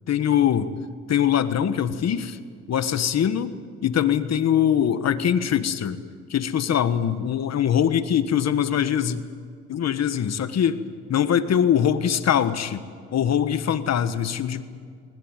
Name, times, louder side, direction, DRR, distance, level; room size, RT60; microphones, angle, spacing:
voice 1, 0.1-0.7 1.1-2.4 2.7-3.5 3.8-6.0 6.3-9.3 9.7-10.8 11.1-12.8 13.1-14.6, left 9 dB, 60° left, 12 dB, 1.5 m, -22 dB
22.0 x 20.5 x 9.1 m, 2.2 s
cardioid pair, 90°, 30 cm